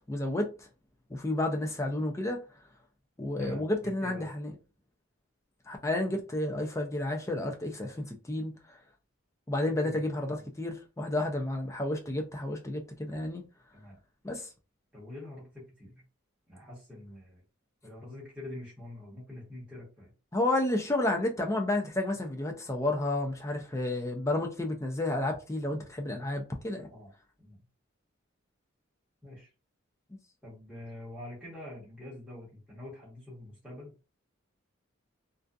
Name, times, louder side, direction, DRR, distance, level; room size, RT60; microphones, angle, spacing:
voice 1, 0.1-0.7 1.1-2.4 3.2-4.5 5.7-8.5 9.5-13.4 14.2-14.5 20.3-26.9, left 1 dB, 15° left, 0.4 m, -31 dB
voice 2, 3.4-4.3 9.6-10.0 10.3-10.5 13.7-14.0 14.9-16.0 16.5-17.4 17.8-20.1 26.9-27.1 27.4-27.6 29.2-29.5 30.4-33.9, left 1 dB, 5° right, 1.1 m, -45 dB
2.5 x 2.3 x 2.3 m
head